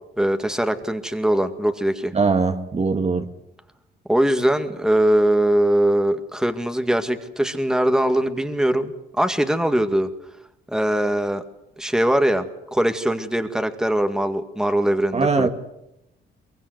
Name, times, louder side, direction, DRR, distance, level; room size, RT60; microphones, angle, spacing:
voice 1, 0.2-2.1 4.1-10.1 10.7-11.4 11.8-12.5 12.7-15.5, right 1 dB, 5° right, 7 dB, 2.0 m, -21 dB
voice 2, 2.1-3.3 15.1-15.5, right 4 dB, 30° right, 6 dB, 1.9 m, -21 dB
23.5 x 23.0 x 8.0 m, 0.86 s
cardioid pair, 90°, 20 cm